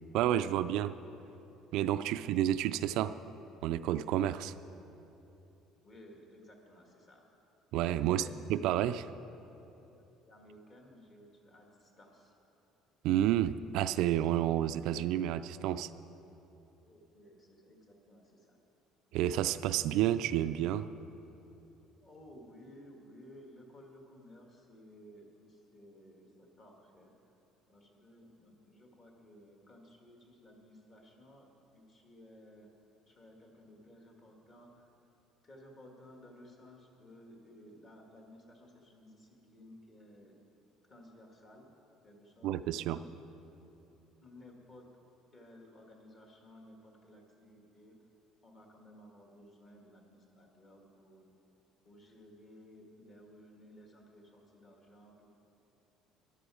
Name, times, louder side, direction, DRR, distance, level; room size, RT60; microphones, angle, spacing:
voice 1, 0.1-0.9 1.7-3.2 3.6-4.5 7.7-9.1 13.0-15.9 19.1-20.9 42.4-43.0, right 12 dB, 65° right, 12 dB, 0.3 m, -30 dB
voice 2, 5.8-7.3 8.0-8.3 9.1-9.3 9.8-12.3 16.8-18.6 22.0-27.1 27.7-32.7 33.1-34.9 35.4-40.3 40.9-41.7 42.0-42.5 42.8-43.1 44.2-44.8 45.3-48.0 48.4-51.3 51.9-55.3, left 1 dB, 30° left, 1 dB, 1.8 m, -56 dB
13.5 x 11.5 x 4.9 m, 2.9 s
cardioid pair, 165°, 0 cm